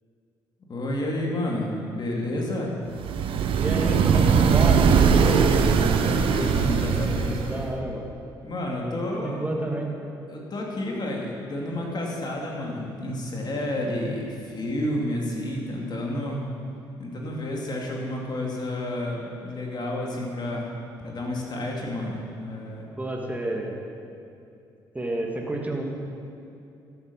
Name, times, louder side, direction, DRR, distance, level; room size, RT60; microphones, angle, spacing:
voice 1, 0.7-2.7 6.0-7.6 8.4-9.4 10.3-16.4 17.0-20.7 21.0-22.9, left 1 dB, 45° left, -1 dB, 2.6 m, -30 dB
sound 1, 3.0-7.7, right 6 dB, 65° right, 0.9 m, -20 dB
voice 2, 3.6-5.5 7.4-8.0 9.1-9.9 23.0-23.8 24.9-25.8, right 1 dB, 15° right, 0 dB, 2.4 m, -30 dB
13.0 x 8.4 x 5.7 m, 2.6 s
hypercardioid pair, 55°, 10 cm